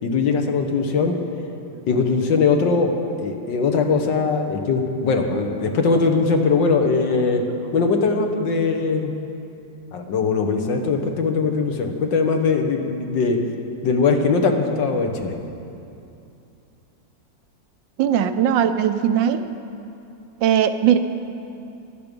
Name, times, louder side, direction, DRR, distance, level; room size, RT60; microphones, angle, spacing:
voice 1, 0.0-1.2 1.9-2.9 3.2-7.4 7.7-9.1 9.9-13.4 13.8-15.3, left 4 dB, 75° left, 4 dB, 1.8 m, -20 dB
voice 2, 18.0-19.4 20.4-21.0, right 9 dB, 80° right, 9 dB, 1.4 m, -19 dB
15.5 x 12.0 x 5.2 m, 2.7 s
omnidirectional pair, 2.0 m